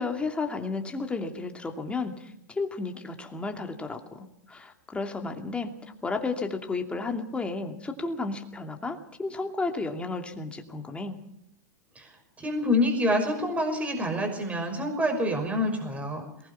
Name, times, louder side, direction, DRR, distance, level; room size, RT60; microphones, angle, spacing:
voice 1, 0.0-5.8 6.0-11.2, left 3 dB, 10° left, 4 dB, 2.6 m, -33 dB
voice 2, 12.4-16.2, left 1 dB, 15° right, 4 dB, 5.8 m, -27 dB
22.5 x 20.0 x 5.9 m, 0.79 s
hypercardioid pair, 110°, 10 cm